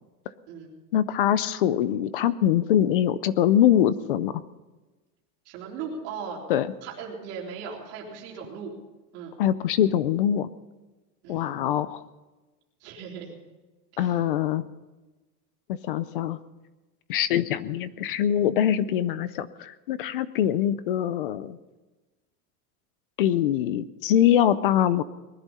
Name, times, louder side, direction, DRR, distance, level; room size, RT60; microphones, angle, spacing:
voice 1, 0.9-4.3 6.5-6.7 9.4-10.5 11.3-12.0 14.0-14.6 15.8-16.4 17.1-21.6 23.2-25.0, left 10 dB, 40° left, 17 dB, 0.4 m, -23 dB
voice 2, 5.5-6.4 6.8-8.7 9.1-9.3 11.2-11.5 12.8-13.4 13.9-14.2, right 6 dB, 30° right, -3 dB, 3.8 m, -38 dB
20.0 x 11.0 x 5.5 m, 1.2 s
supercardioid pair, 180°, 45 cm